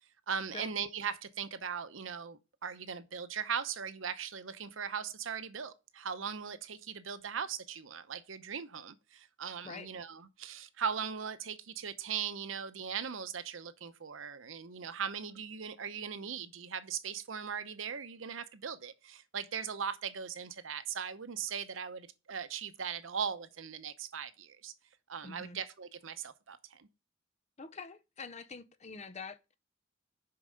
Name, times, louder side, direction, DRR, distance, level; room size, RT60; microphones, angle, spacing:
voice 1, 0.3-24.7 25.1-26.9, right 7 dB, 90° right, 0.8 m, -39 dB
voice 2, 25.2-25.6 27.6-29.5, left 4 dB, 35° left, 0.7 m, -45 dB
6.7 x 5.5 x 5.0 m
head